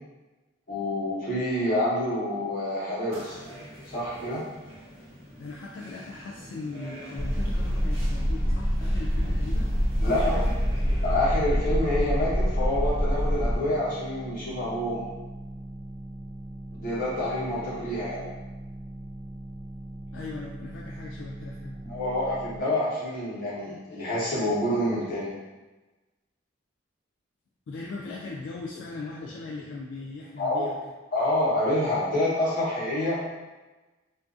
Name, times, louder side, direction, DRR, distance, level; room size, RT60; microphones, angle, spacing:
voice 1, 0.7-3.4 3.9-4.4 10.0-10.4 11.0-15.1 16.8-18.2 21.9-25.3 30.4-30.7 31.1-33.2, left 1 dB, 45° left, -9 dB, 0.9 m, -27 dB
sound 1, 3.1-11.2, equal, 30° right, 1.0 m, -46 dB
voice 2, 5.4-10.6 20.1-21.8 27.7-30.8, left 3 dB, 65° left, -4 dB, 0.3 m, -39 dB
sound 2, 7.1-22.6, right 1 dB, 5° right, 0.4 m, -40 dB
sound 3, 7.2-13.6, equal, 55° right, 1.0 m, -26 dB
2.5 x 2.3 x 2.4 m, 1.2 s
head